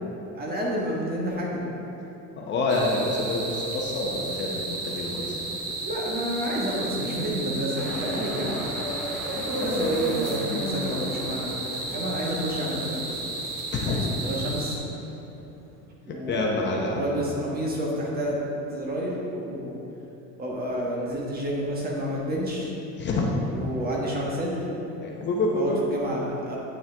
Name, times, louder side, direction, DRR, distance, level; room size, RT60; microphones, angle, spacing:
voice 1, 0.3-1.7 5.8-8.7 9.3-11.5 11.9-13.3 13.8-14.8 16.0-18.4 18.7-19.8 20.4-22.7 23.5-24.7 25.5-26.6, equal, 30° right, -3 dB, 1.3 m, -30 dB
voice 2, 2.3-5.6 9.6-10.0 13.7-14.0 16.1-17.2 23.0-23.3 25.0-25.8, left 2 dB, 35° left, -2 dB, 0.8 m, -27 dB
sound 1, 2.7-14.8, right 2 dB, 85° right, 1.1 m, -34 dB
sound 2, 7.8-15.8, equal, 5° left, 1.3 m, -33 dB
8.7 x 6.3 x 3.4 m, 3.0 s
cardioid pair, 150°, 33 cm